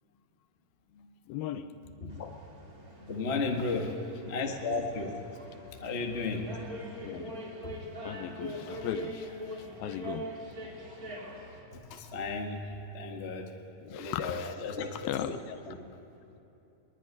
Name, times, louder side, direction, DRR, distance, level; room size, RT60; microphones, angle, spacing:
voice 1, 1.3-1.7 3.7-4.0 7.0-7.3 8.0-10.3 13.8-15.6, left 10 dB, 75° left, 11 dB, 2.3 m, -38 dB
sound 1, 2.1-11.6, right 1 dB, 25° right, 2.8 m, -43 dB
voice 2, 3.0-5.2 5.8-6.6 7.6-7.8 11.7-13.6 13.9-15.3 15.7-15.9, left 3 dB, 50° left, 2 dB, 0.7 m, -34 dB
22.0 x 21.0 x 9.9 m, 2.9 s
omnidirectional pair, 4.6 m